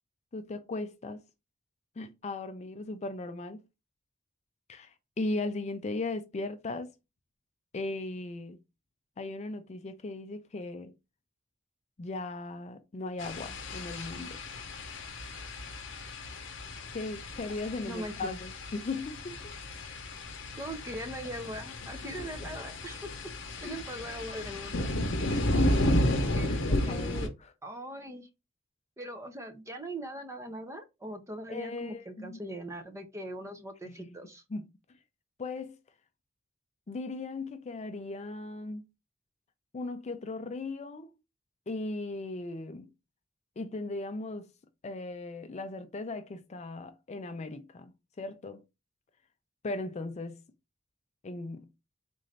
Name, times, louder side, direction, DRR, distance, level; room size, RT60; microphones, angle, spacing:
voice 1, 0.3-1.2 2.0-3.6 4.7-6.9 7.7-8.6 9.2-10.9 12.0-14.4 16.9-19.6 23.6-23.8 26.7-27.2 31.5-32.4 33.8-34.2 34.5-34.7 35.4-35.8 36.9-38.9 39.7-41.1 41.7-42.9 43.6-44.5 44.8-48.6 49.6-50.4 51.2-51.7, left 2 dB, 35° left, 0.4 m, -37 dB
sound 1, 13.2-27.3, left 1 dB, 70° left, 0.8 m, -33 dB
voice 2, 17.9-18.3 20.6-23.3 23.6-24.9 25.3-25.5 26.3-26.6 26.9-27.3 27.6-28.3 29.0-34.4, right 1 dB, 15° right, 0.6 m, -41 dB
3.8 x 2.6 x 3.2 m
head